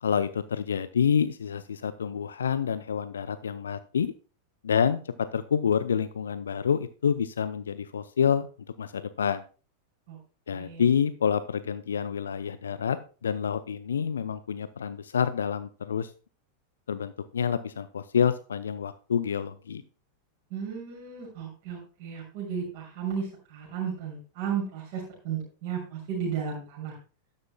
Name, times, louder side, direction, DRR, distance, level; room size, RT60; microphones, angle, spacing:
voice 1, 0.0-4.1 4.6-8.5 8.8-9.4 10.5-13.0 13.2-16.1 16.9-19.8, left 7 dB, 70° left, 13 dB, 0.5 m, -28 dB
voice 2, 10.5-10.8 20.5-26.9, right 7 dB, 50° right, -5 dB, 6.4 m, -34 dB
13.0 x 11.0 x 2.2 m, 0.36 s
figure-of-eight pair, 90°, 0 cm